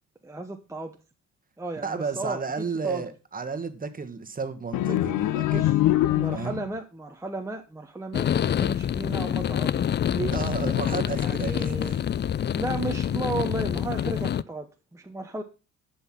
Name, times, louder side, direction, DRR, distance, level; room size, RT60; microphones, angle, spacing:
voice 1, 0.2-0.9 1.6-3.0 5.5-5.8 6.1-9.7 10.1-10.3 11.2-12.0 12.5-15.4, right 2 dB, 10° right, 1.0 m, -34 dB
voice 2, 1.8-5.7 6.3-6.6 10.3-12.0, right 5 dB, 30° right, 1.5 m, -32 dB
sound 1, 4.7-6.8, left 14 dB, 85° left, 0.7 m, -24 dB
sound 2, 8.1-14.4, left 9 dB, 35° left, 0.4 m, -26 dB
11.0 x 5.7 x 5.8 m
cardioid pair, 90°, 30 cm